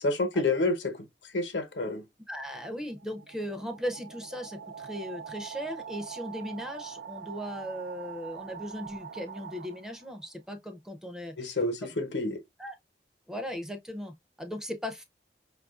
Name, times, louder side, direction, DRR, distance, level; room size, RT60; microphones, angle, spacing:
voice 1, 0.0-2.0 11.4-12.4, left 2 dB, 90° left, 0.9 m, -29 dB
voice 2, 2.3-11.6 12.6-12.8 13.3-15.0, equal, 5° right, 0.4 m, -38 dB
sound 1, 2.5-10.3, right 7 dB, 70° right, 0.4 m, -44 dB
5.4 x 2.4 x 2.3 m
head